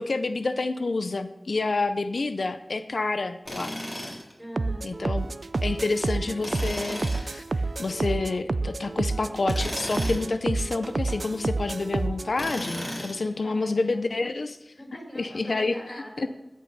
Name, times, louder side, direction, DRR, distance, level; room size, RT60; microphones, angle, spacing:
voice 1, 0.0-3.7 4.8-5.3 5.6-7.4 7.8-14.7 15.2-15.8 16.2-16.3, left 3 dB, 85° left, 10 dB, 0.5 m, -28 dB
Tools, 3.5-4.3 6.4-7.3 9.4-10.3 12.3-13.3, left 1 dB, 30° left, 4.0 m, -34 dB
voice 2, 4.4-4.9 13.2-14.0 14.8-16.3, equal, 5° right, 0 dB, 4.5 m, -42 dB
sound 1, 4.6-12.3, right 3 dB, 75° right, 0.4 m, -29 dB
15.0 x 5.4 x 5.5 m, 0.98 s
wide cardioid pair, 50°, 0 cm